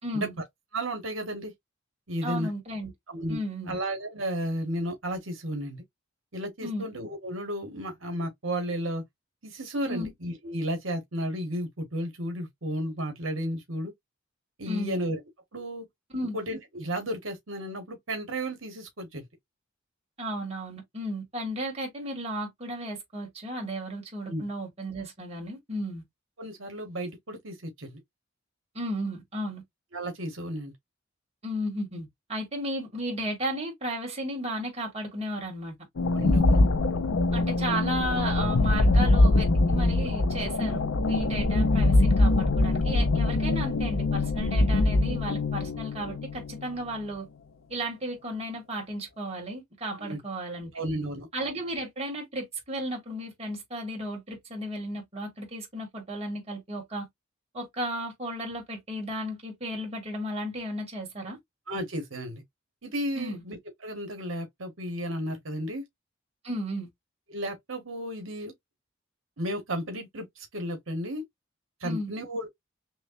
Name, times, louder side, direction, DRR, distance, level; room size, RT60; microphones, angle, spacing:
voice 1, 0.0-0.4 2.2-2.9 3.3-3.8 6.6-6.8 9.9-10.1 14.7-14.9 16.1-16.4 20.2-26.0 28.7-29.6 31.4-35.7 37.3-47.3 47.7-50.7 51.3-57.1 57.5-61.4 63.2-63.4 66.4-66.9 71.8-72.1, equal, 30° right, 2.2 m, -34 dB
voice 2, 0.7-1.5 2.1-2.5 3.1-3.4 3.7-5.8 6.3-9.0 9.4-13.9 14.6-15.2 15.5-15.8 16.3-19.3 24.3-24.4 26.4-28.0 29.9-30.7 36.1-36.6 49.9-50.2 50.7-51.3 61.7-62.4 62.8-65.8 67.3-68.5 69.4-71.2 71.8-72.5, equal, 80° right, 1.3 m, -33 dB
sound 1, 36.0-47.0, left 2 dB, 90° left, 0.6 m, -23 dB
6.2 x 2.2 x 2.6 m
head